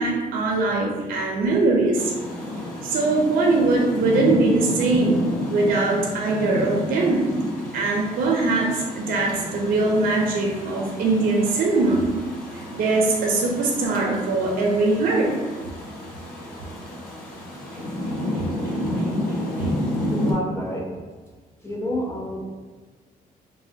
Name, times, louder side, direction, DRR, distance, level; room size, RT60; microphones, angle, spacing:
voice 1, 0.0-2.1 2.8-7.3 7.7-12.1 12.5-15.3 17.7-19.7, right 3 dB, 70° right, -1 dB, 0.4 m, -22 dB
Rain, 1.9-20.3, left 1 dB, 70° left, 0.6 m, -31 dB
voice 2, 20.1-20.8 21.6-22.5, equal, 20° left, -2 dB, 0.4 m, -29 dB
2.8 x 2.1 x 2.6 m, 1.4 s
cardioid pair, 130°, 15 cm